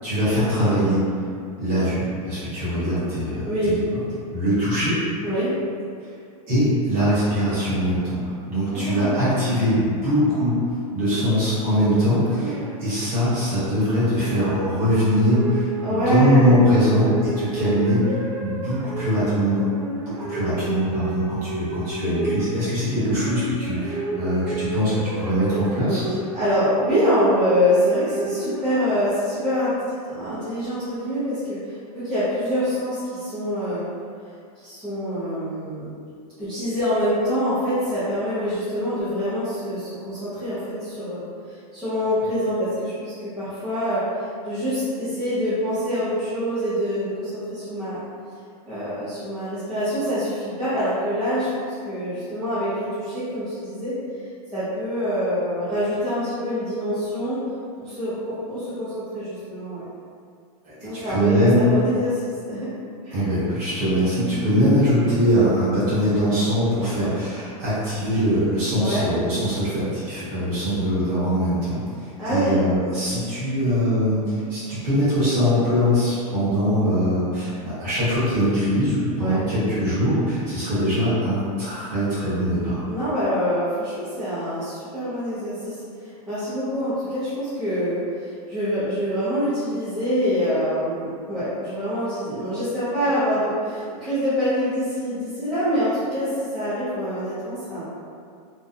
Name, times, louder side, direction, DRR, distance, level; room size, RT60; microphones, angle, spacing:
voice 1, 0.0-1.0 1.6-3.7 4.3-5.0 6.5-8.2 8.5-10.6 10.9-19.6 20.2-26.1 60.6-61.6 63.1-82.8, equal, 30° right, -12 dB, 1.0 m, -22 dB
voice 2, 3.4-3.8 5.2-5.6 8.7-9.6 15.8-16.5 26.3-29.8 30.1-33.9 34.5-35.9 36.4-48.0 48.7-54.0 54.5-57.4 57.8-59.8 60.8-62.7 63.0-63.3 68.8-69.1 72.2-72.7 79.2-79.5 82.8-97.8, equal, 5° right, -18 dB, 0.4 m, -25 dB
sound 1, 12.2-13.2 14.3-29.1, right 1 dB, 70° right, 0.5 m, -31 dB
2.6 x 2.0 x 2.4 m, 2.3 s
supercardioid pair, 175°, 19 cm